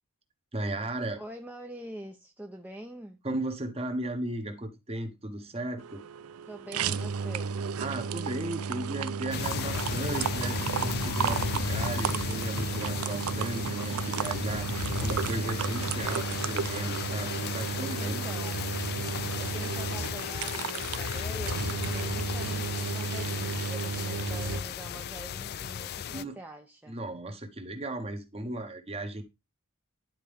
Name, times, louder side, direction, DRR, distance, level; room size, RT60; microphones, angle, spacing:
voice 1, 0.5-1.2 3.2-6.0 7.8-18.2 26.1-26.3 26.9-29.2, right 1 dB, 30° right, 1.2 m, -36 dB
voice 2, 1.2-3.2 6.5-7.6 18.0-18.7 19.4-27.0, right 1 dB, 10° right, 0.7 m, -44 dB
sound 1, 5.8-24.6, right 6 dB, 90° right, 0.5 m, -33 dB
sound 2, 9.3-26.2, left 8 dB, 50° left, 0.3 m, -35 dB
10.5 x 4.4 x 3.5 m
head